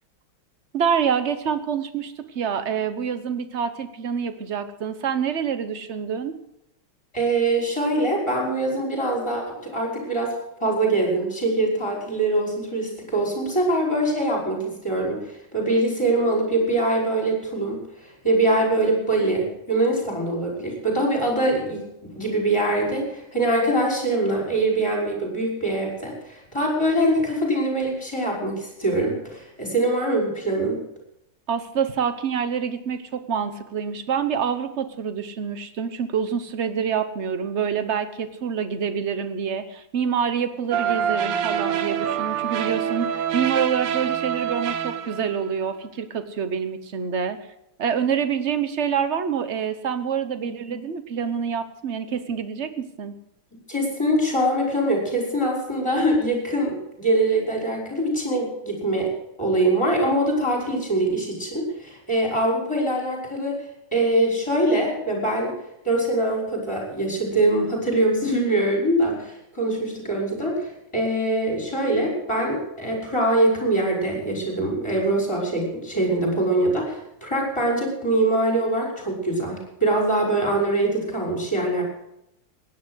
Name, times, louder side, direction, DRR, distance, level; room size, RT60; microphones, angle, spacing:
voice 1, 0.7-6.3 31.5-47.4 47.8-53.1, right 7 dB, 45° right, 10 dB, 0.9 m, -26 dB
voice 2, 7.1-10.3 10.6-15.2 15.5-30.8 53.7-59.1 59.4-63.6 63.9-65.5 65.8-81.8, right 1 dB, 10° left, -2 dB, 5.5 m, -23 dB
sound 1, 40.7-45.5, right 9 dB, 90° right, 1.8 m, -26 dB
16.5 x 10.5 x 6.3 m, 0.83 s
omnidirectional pair, 2.4 m